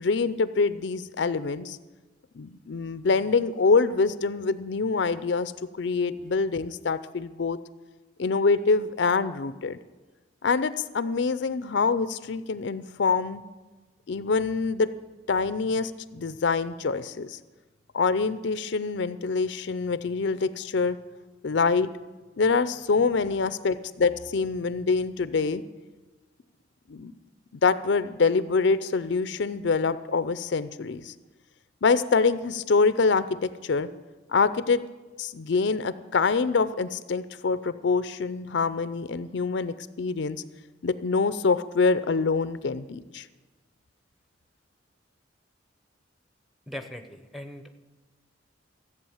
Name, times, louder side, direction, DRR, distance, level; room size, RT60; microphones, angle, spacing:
voice 1, 0.0-1.8 2.4-5.5 5.8-7.6 8.2-9.8 10.4-13.4 14.1-14.9 15.3-17.4 17.9-21.0 21.4-21.9 22.4-25.6 26.9-27.1 27.6-31.1 31.8-33.9 34.3-34.8 35.2-40.4 40.8-43.3, left 4 dB, 65° left, 14 dB, 0.5 m, -25 dB
voice 2, 46.7-47.6, left 1 dB, ahead, 7 dB, 0.8 m, -39 dB
14.5 x 8.0 x 7.1 m, 1.2 s
head